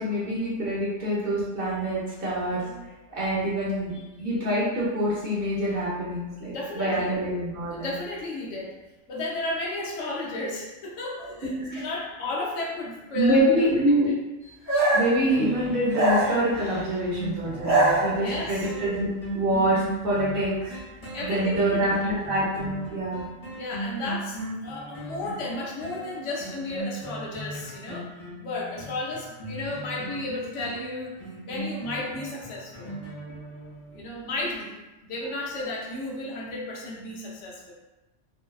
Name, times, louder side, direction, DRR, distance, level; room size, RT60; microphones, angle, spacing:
voice 1, 0.0-2.8 3.1-7.8 11.4-11.8 13.1-14.1 14.9-19.1 19.3-20.7 21.2-23.2, right 1 dB, 55° right, -6 dB, 0.7 m, -26 dB
voice 2, 6.4-7.1 7.7-8.8 9.1-14.0 18.0-18.7 21.1-22.2 23.5-28.1 28.4-32.9 33.9-34.7 35.0-37.7, left 2 dB, 75° left, -4 dB, 0.9 m, -33 dB
sound 1, 14.7-15.2 15.9-16.9 17.4-18.5, right 2 dB, 20° right, 0.5 m, -23 dB
sound 2, 15.3-34.0 34.5-34.6, right 1 dB, 35° left, 0.7 m, -38 dB
2.6 x 2.1 x 2.2 m, 1.1 s
omnidirectional pair, 1.3 m